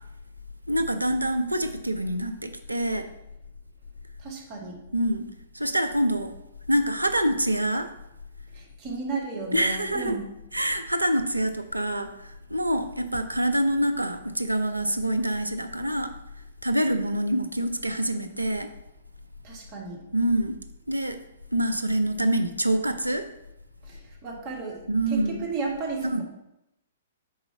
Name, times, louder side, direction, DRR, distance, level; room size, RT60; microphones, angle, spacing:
voice 1, 0.7-3.1 4.9-5.3 5.5-6.3 6.7-7.9 9.5-10.2 10.5-16.1 16.6-18.7 20.1-20.6 20.9-21.2 21.5-23.3 24.9-25.4 26.0-26.2, right 1 dB, 85° right, 8 dB, 0.5 m, -26 dB
voice 2, 4.2-4.8 8.5-10.2 19.4-20.0 23.8-26.2, right 4 dB, 30° right, -2 dB, 1.7 m, -34 dB
4.8 x 3.9 x 5.6 m, 0.86 s
figure-of-eight pair, 115°, 0 cm